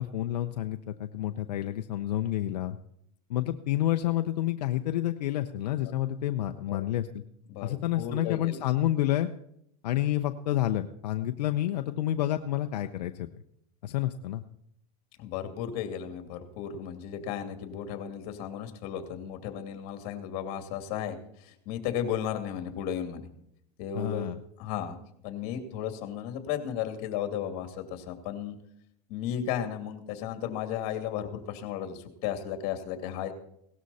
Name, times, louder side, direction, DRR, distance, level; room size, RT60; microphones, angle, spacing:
voice 1, 0.0-2.8 3.3-7.2 7.6-9.3 9.8-13.3 13.8-14.4 23.9-24.4, left 13 dB, 85° left, 7 dB, 0.8 m, -29 dB
voice 2, 7.5-8.6 15.2-23.3 23.8-24.2 24.6-25.0 25.2-28.6 29.1-33.3, left 9 dB, 50° left, 7 dB, 2.6 m, -34 dB
17.5 x 13.0 x 4.2 m, 0.73 s
supercardioid pair, 140°, 21 cm